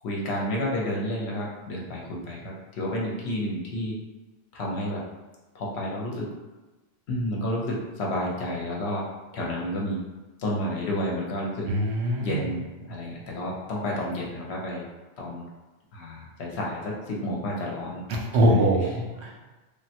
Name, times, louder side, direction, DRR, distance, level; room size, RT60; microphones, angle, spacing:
voice 1, 0.0-3.9 4.5-5.1 5.5-6.3 7.1-9.1 9.3-10.0 10.4-11.7 12.2-14.8 15.2-15.5 15.9-18.0 18.4-18.9, left 1 dB, 70° left, -3 dB, 0.9 m, -30 dB
voice 2, 11.7-12.4 18.1-19.4, right 1 dB, 70° right, -1 dB, 0.8 m, -23 dB
3.3 x 2.1 x 2.8 m, 1.1 s
omnidirectional pair, 1.2 m